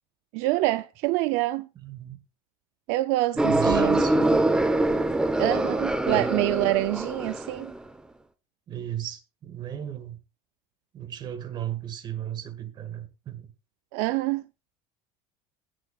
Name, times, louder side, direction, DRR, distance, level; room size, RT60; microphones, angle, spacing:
voice 1, 0.3-1.7 2.9-4.0 5.4-7.7 13.9-14.4, right 18 dB, 65° right, 0.5 m, -26 dB
voice 2, 1.8-2.2 3.3-4.4 6.1-6.2 8.7-10.2 10.9-13.5, right 11 dB, 35° right, 1.9 m, -35 dB
sound 1, 3.4-7.7, right 2 dB, 5° right, 0.8 m, -24 dB
17.5 x 9.9 x 2.4 m
cardioid pair, 150°, 14 cm